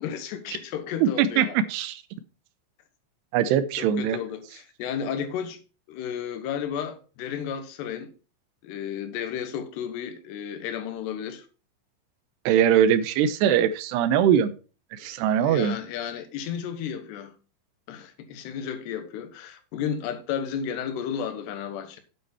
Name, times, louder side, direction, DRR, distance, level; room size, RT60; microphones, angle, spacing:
voice 1, 0.0-1.6 3.8-5.6 5.9-8.1 8.6-11.5 15.0-17.4 17.9-22.0, left 8 dB, 85° left, 3.4 m, -33 dB
voice 2, 1.0-2.0 3.3-4.2 12.5-14.5 14.9-15.8, right 9 dB, 85° right, 3.0 m, -22 dB
9.4 x 8.2 x 4.2 m
omnidirectional pair, 4.7 m